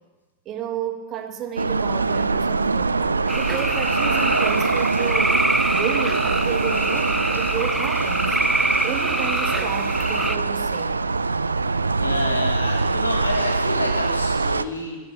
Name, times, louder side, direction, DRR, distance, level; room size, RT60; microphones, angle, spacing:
voice 1, 0.5-5.4 5.7-8.4 8.8-11.0, right 9 dB, 35° right, 1.6 m, -32 dB
sound 1, 1.6-14.6, right 3 dB, 80° right, 0.5 m, -23 dB
sound 2, 3.3-10.4, right 2 dB, 5° right, 0.7 m, -25 dB
voice 2, 11.7-15.0, left 1 dB, 80° left, 3.1 m, -28 dB
19.5 x 8.0 x 8.4 m
figure-of-eight pair, 90°, 0 cm